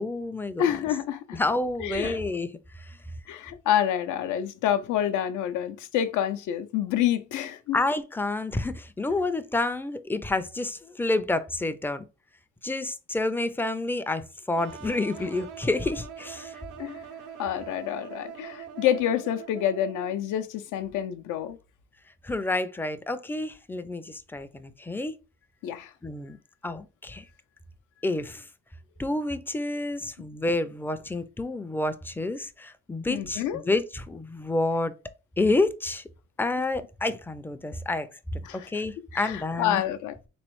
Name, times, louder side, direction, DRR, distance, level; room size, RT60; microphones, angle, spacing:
voice 1, 0.0-0.8 1.3-3.0 7.7-12.0 12.6-16.6 22.2-25.2 26.0-26.4 26.6-27.3 28.0-28.5 29.0-34.9 35.4-36.0 36.4-39.8, left 2 dB, 5° left, 0.3 m, -29 dB
voice 2, 0.6-1.4 1.8-2.2 3.3-7.8 16.8-17.0 17.4-21.6 25.6-25.9 33.1-33.6 38.4-38.7 39.1-40.1, left 10 dB, 85° left, 0.5 m, -28 dB
sound 1, 14.6-20.4, right 8 dB, 90° right, 0.6 m, -43 dB
3.4 x 3.1 x 3.0 m
cardioid pair, 90°, 30 cm